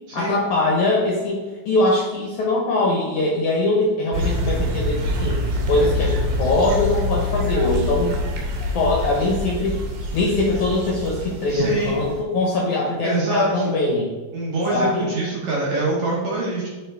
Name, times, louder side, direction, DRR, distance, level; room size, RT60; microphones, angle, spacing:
voice 1, 0.1-5.4 5.7-8.2 8.7-9.8 10.1-14.1 14.7-15.1, left 2 dB, 70° left, -3 dB, 1.9 m, -22 dB
sound 1, 4.1-12.2, left 1 dB, 75° right, 2.8 m, -25 dB
voice 2, 11.5-12.0 13.0-13.7 14.3-16.7, right 2 dB, 60° right, -6 dB, 2.0 m, -24 dB
9.2 x 3.8 x 3.4 m, 1.3 s
omnidirectional pair, 4.4 m